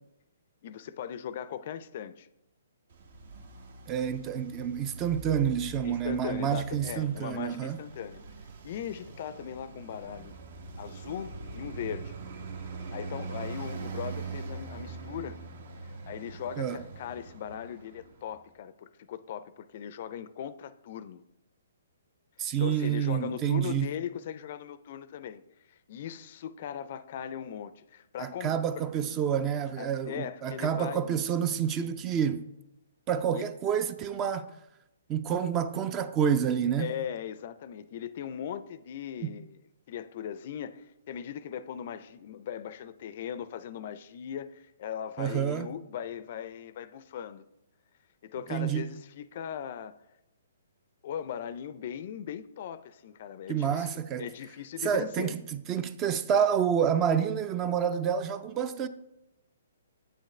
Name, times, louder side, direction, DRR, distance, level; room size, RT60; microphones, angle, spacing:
voice 1, 0.6-2.3 5.8-8.2 8.6-10.4 10.8-12.2 12.9-15.4 15.8-21.2 22.6-25.4 25.7-28.5 29.8-31.1 33.3-33.5 36.8-39.6 39.9-47.4 48.2-50.0 51.0-53.9 54.2-55.4, left 9 dB, 50° left, 0.4 m, -39 dB
Traffic noise roadway noise, 2.9-18.4, right 3 dB, 60° right, 0.9 m, -42 dB
voice 2, 3.9-7.8 16.6-16.8 22.4-23.9 28.2-32.4 33.1-34.5 35.1-36.9 39.2-39.3 45.2-45.7 48.5-48.8 53.5-54.3 54.8-58.9, right 8 dB, 25° right, 0.4 m, -28 dB
7.7 x 6.5 x 3.2 m
hypercardioid pair, 145°, 0 cm